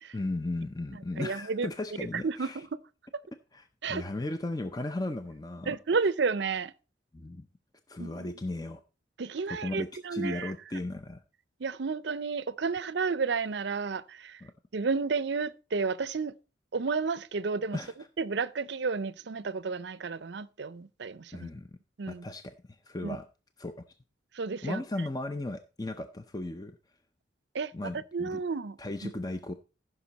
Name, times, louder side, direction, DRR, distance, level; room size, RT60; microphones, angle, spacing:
voice 1, 0.1-2.6 3.5-5.8 7.1-7.5 7.9-8.8 9.5-11.2 14.4-14.5 17.7-18.1 21.3-21.7 22.1-23.3 23.6-23.8 24.6-26.8 27.7-28.4 28.8-29.5, left 2 dB, 20° left, 0.5 m, -36 dB
voice 2, 1.2-1.7 2.2-2.8 3.8-4.0 5.7-6.7 8.0-8.3 9.2-10.5 11.6-14.4 14.7-16.3 16.7-17.8 18.2-21.5 22.0-22.2 23.0-23.2 24.4-24.8 27.5-27.7 28.1-28.8 29.0-29.1, right 4 dB, 65° right, 0.5 m, -31 dB
15.0 x 5.9 x 4.0 m
head